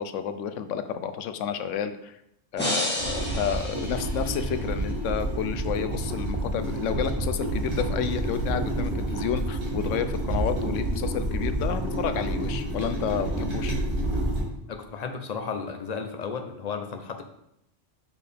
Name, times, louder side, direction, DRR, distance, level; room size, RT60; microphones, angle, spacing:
voice 1, 0.0-2.2 2.5-13.8, left 8 dB, 80° left, 10 dB, 0.9 m, -30 dB
sound 1, 2.6-4.7, left 1 dB, 10° left, 1.6 m, -31 dB
sound 2, 3.0-14.4, right 1 dB, 60° right, 2.0 m, -29 dB
voice 2, 14.7-17.2, left 5 dB, 45° left, 5 dB, 0.6 m, -34 dB
7.0 x 4.7 x 3.4 m, 0.80 s
omnidirectional pair, 1.3 m